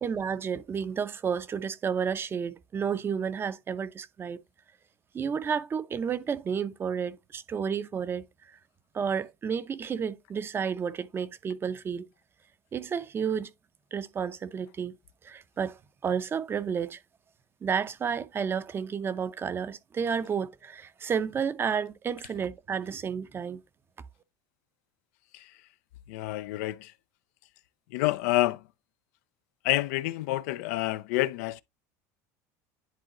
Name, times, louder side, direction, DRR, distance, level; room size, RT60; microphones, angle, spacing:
voice 1, 0.0-4.4 5.1-8.5 8.9-12.1 12.7-13.5 13.9-15.0 15.2-17.0 17.6-23.6, right 7 dB, 25° right, 0.6 m, -31 dB
voice 2, 26.1-26.9 27.9-28.6 29.6-31.6, left 17 dB, 80° left, 0.4 m, -28 dB
10.5 x 3.8 x 2.9 m
supercardioid pair, 110°, 9 cm